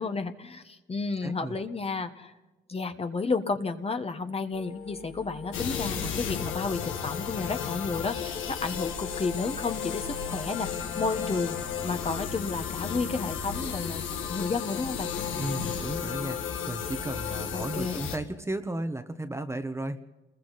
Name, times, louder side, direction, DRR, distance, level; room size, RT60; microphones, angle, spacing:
voice 1, 0.0-2.3 2.7-11.6 11.8-14.0 14.3-15.1 15.6-15.9 17.5-18.0, left 4 dB, 30° left, 8 dB, 1.5 m, -32 dB
voice 2, 1.2-1.6 15.3-16.4 16.7-20.0, right 1 dB, 15° right, 8 dB, 1.3 m, -34 dB
sound 1, 4.5-15.0, left 4 dB, 50° left, 1.7 m, -46 dB
sound 2, 5.5-18.2, left 7 dB, 90° left, 2.3 m, -34 dB
28.5 x 21.5 x 4.2 m, 1.1 s
cardioid pair, 90°, 20 cm